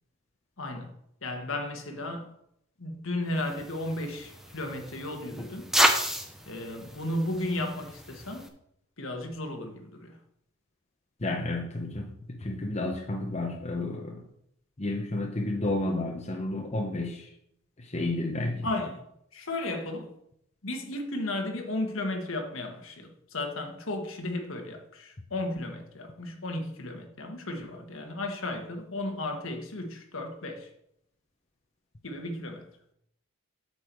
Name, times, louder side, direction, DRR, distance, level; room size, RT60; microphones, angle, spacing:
voice 1, 0.6-0.9 1.2-2.3 2.8-5.7 6.5-8.5 9.0-10.2 18.6-19.0 19.3-20.1 20.6-30.7 32.0-32.7, left 1 dB, 65° left, 1.5 m, -34 dB
sound 1, 3.4-8.5, equal, ahead, 0.7 m, -31 dB
voice 2, 11.2-14.2 14.8-17.3 17.8-18.7, left 2 dB, 30° left, 0.8 m, -31 dB
8.3 x 7.0 x 4.5 m
head